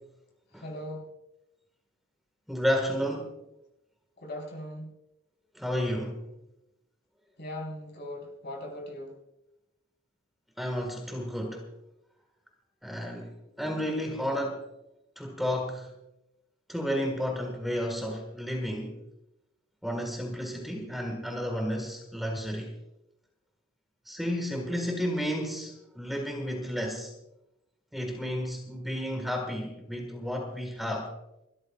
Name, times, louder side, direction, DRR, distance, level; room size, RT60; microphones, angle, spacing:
voice 1, 0.5-1.1 4.2-4.9 7.4-9.1, left 1 dB, 50° left, 0 dB, 4.3 m, -39 dB
voice 2, 2.5-3.3 5.5-6.2 10.6-11.6 12.8-14.7 15.2-15.9 16.7-19.0 19.8-22.7 24.0-27.1 27.9-31.1, equal, ahead, 2 dB, 1.6 m, -32 dB
29.5 x 13.0 x 2.4 m, 0.90 s
head